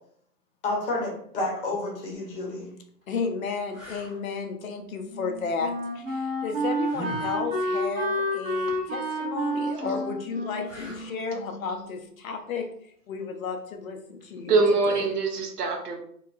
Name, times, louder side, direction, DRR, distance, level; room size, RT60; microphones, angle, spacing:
voice 1, 0.6-2.7, left 2 dB, 35° left, -2 dB, 0.9 m, -30 dB
sound 1, 2.1-2.3 3.0-3.1 3.7-4.2 6.8-7.4 10.6-11.2 14.2-14.4, left 1 dB, 10° right, 0.5 m, -40 dB
voice 2, 3.1-12.6 13.1-14.5 14.9-15.0, left 5 dB, 60° left, 5 dB, 0.5 m, -33 dB
Wind instrument woodwind instrument, 4.6-11.9, equal, 30° right, 0.9 m, -30 dB
voice 3, 14.5-16.0, right 3 dB, 75° right, 3 dB, 0.8 m, -24 dB
2.8 x 2.2 x 2.4 m, 0.65 s
hypercardioid pair, 135°, 48 cm